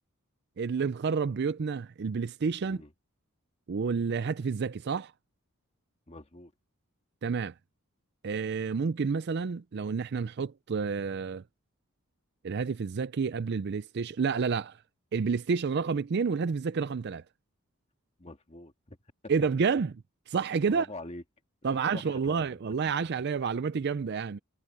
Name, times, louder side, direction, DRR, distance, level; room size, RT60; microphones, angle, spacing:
voice 1, 0.6-2.8 3.7-5.1 7.2-7.5 8.2-11.4 12.4-14.8 15.1-17.2 19.3-19.9 20.3-20.9 21.6-24.4, right 5 dB, 50° right, 0.4 m, -29 dB
voice 2, 6.1-6.5 18.2-19.0 20.6-21.2 21.9-22.6, left 2 dB, 30° left, 1.8 m, -45 dB
head